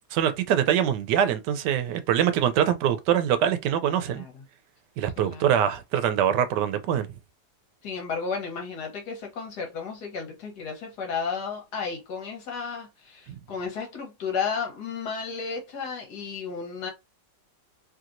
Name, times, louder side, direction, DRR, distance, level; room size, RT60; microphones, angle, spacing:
voice 1, 0.1-4.2 5.0-7.1, right 9 dB, 80° right, 1.2 m, -24 dB
voice 2, 4.1-4.4 5.2-5.4 7.8-16.9, left 5 dB, 70° left, 1.6 m, -33 dB
3.2 x 2.8 x 2.5 m
omnidirectional pair, 1.8 m